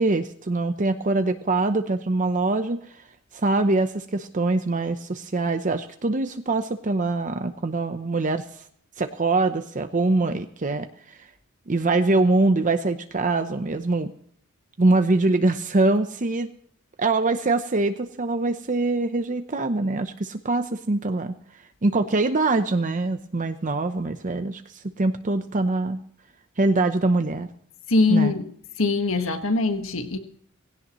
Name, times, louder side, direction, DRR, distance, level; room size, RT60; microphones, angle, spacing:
voice 1, 0.0-3.0 3.3-8.6 9.0-10.9 11.7-14.1 14.8-16.5 17.0-21.3 21.8-26.0 26.6-27.5 28.1-28.3, right 2 dB, 40° right, 0.8 m, -23 dB
voice 2, 27.9-28.5 28.8-30.2, left 3 dB, 70° left, 1.6 m, -22 dB
19.0 x 17.0 x 3.1 m
head